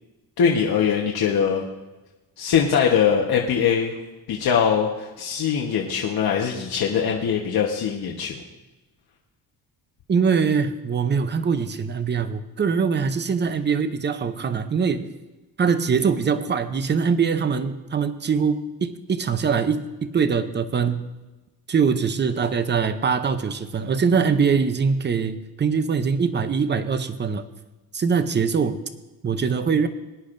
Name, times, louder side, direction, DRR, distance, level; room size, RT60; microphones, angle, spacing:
voice 1, 0.4-1.6 2.4-3.9 4.3-8.4, left 7 dB, 65° left, -1 dB, 1.2 m, -22 dB
voice 2, 10.1-15.1 15.6-21.1 21.7-27.5 27.9-28.8 29.2-29.9, right 6 dB, 25° right, 11 dB, 0.6 m, -23 dB
20.0 x 10.5 x 2.6 m, 1.1 s
cardioid pair, 155°, 39 cm